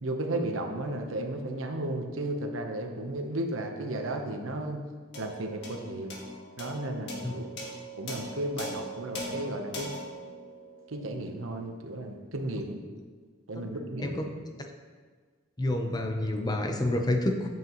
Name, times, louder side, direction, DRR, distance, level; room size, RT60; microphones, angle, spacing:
voice 1, 0.0-4.8 5.2-6.1 6.6-7.5 8.0-9.9 10.9-12.8 13.5-14.2, right 1 dB, 80° right, 4 dB, 0.9 m, -34 dB
sound 1, 5.1-11.7, equal, 60° left, 1.5 m, -41 dB
voice 2, 15.6-17.5, left 1 dB, 20° left, 4 dB, 0.6 m, -28 dB
8.2 x 7.5 x 3.0 m, 1.5 s
head